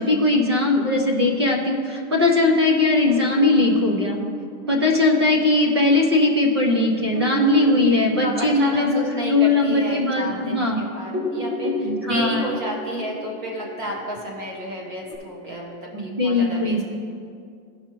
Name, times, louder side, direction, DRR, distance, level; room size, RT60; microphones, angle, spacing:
voice 1, 0.0-4.2 4.7-9.0 9.3-10.8 11.8-12.5 15.9-16.8, left 2 dB, 20° right, 1 dB, 0.3 m, -19 dB
sound 1, 3.1-6.2 6.7-6.8 7.1-10.7 11.0-15.2, left 1 dB, 75° right, 2.1 m, -31 dB
voice 2, 8.0-16.8, right 1 dB, 35° right, -1 dB, 1.0 m, -31 dB
15.5 x 5.8 x 3.0 m, 2.3 s
supercardioid pair, 175°, 43 cm